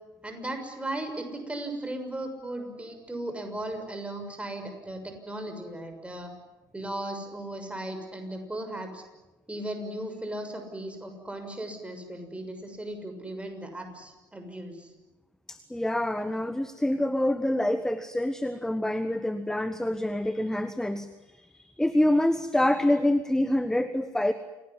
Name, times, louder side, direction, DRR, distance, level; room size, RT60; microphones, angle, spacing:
voice 1, 0.2-6.3 6.7-9.0 9.5-14.9, right 1 dB, 10° right, 5 dB, 6.6 m, -36 dB
voice 2, 15.5-21.1 21.4-24.3, left 1 dB, 5° left, 11 dB, 1.4 m, -26 dB
28.5 x 18.0 x 9.9 m, 1.1 s
figure-of-eight pair, 60°, 11 cm